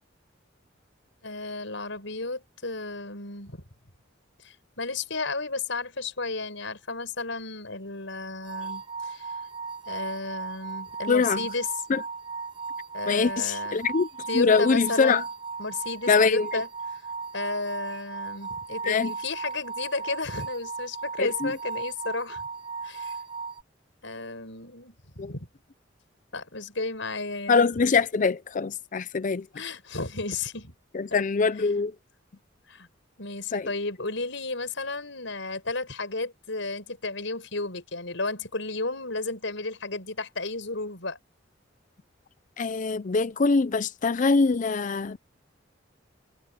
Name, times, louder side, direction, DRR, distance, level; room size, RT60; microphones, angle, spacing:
voice 1, 1.2-3.6 4.4-9.3 9.9-11.7 12.9-13.8 14.3-15.3 15.6-16.7 17.3-22.4 22.8-23.2 24.0-25.5 26.3-27.7 29.6-30.7 31.1-31.2 31.6-31.7 32.7-32.9 33.2-41.2, left 3 dB, 70° left, 6.9 m, -33 dB
sound 1, 8.4-23.6, right 5 dB, 25° right, 1.2 m, -36 dB
voice 2, 11.1-11.4 11.9-12.0 13.1-14.1 14.3-15.2 16.1-16.6 18.8-19.1 21.2-21.5 25.2-25.3 27.5-29.5 30.9-31.9 33.5-33.7 42.6-45.3, left 4 dB, 40° left, 0.5 m, -23 dB
head